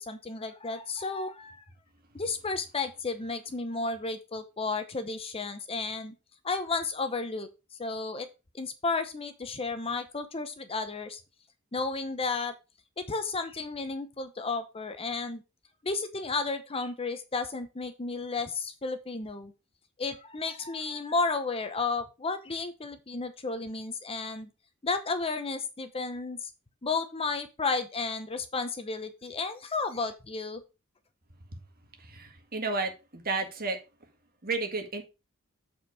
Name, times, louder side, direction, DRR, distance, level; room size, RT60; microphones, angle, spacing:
voice 1, 0.0-1.6 2.1-6.1 6.4-7.5 7.8-8.3 8.5-11.2 11.7-12.6 13.0-15.4 15.8-19.5 20.0-24.5 24.8-26.5 26.8-30.6, left 3 dB, 25° left, 9 dB, 0.8 m, -33 dB
voice 2, 32.0-33.8 34.4-35.0, right 3 dB, 45° right, 4 dB, 1.8 m, -32 dB
7.9 x 4.6 x 4.7 m, 0.28 s
head